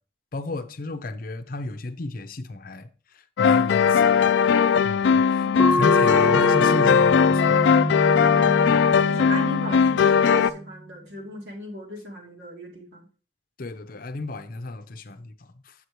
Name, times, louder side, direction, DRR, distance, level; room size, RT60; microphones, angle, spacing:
voice 1, 0.3-2.9 3.1-4.2 4.8-7.7 13.6-15.7, left 2 dB, 55° left, 0.6 m, -34 dB
sound 1, 3.4-10.5, left 7 dB, 85° left, 0.3 m, -19 dB
sound 2, 5.6-10.7, equal, 10° right, 0.3 m, -26 dB
voice 2, 9.0-13.1, equal, 70° right, 2.2 m, -37 dB
8.1 x 7.2 x 3.1 m
head